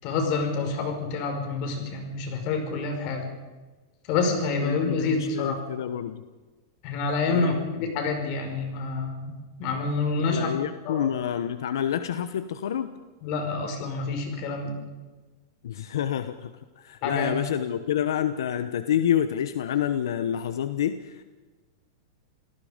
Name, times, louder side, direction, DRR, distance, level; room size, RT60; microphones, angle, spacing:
voice 1, 0.0-3.3 4.1-5.6 6.8-7.5 7.8-10.5 10.8-11.1 13.2-14.8 17.0-17.3, left 4 dB, 40° left, 4 dB, 5.3 m, -28 dB
voice 2, 4.6-6.2 7.3-7.6 10.2-12.9 15.6-16.5 16.8-21.2, left 9 dB, 80° left, 11 dB, 1.1 m, -28 dB
28.0 x 18.0 x 5.2 m, 1.3 s
supercardioid pair, 155°, 2 cm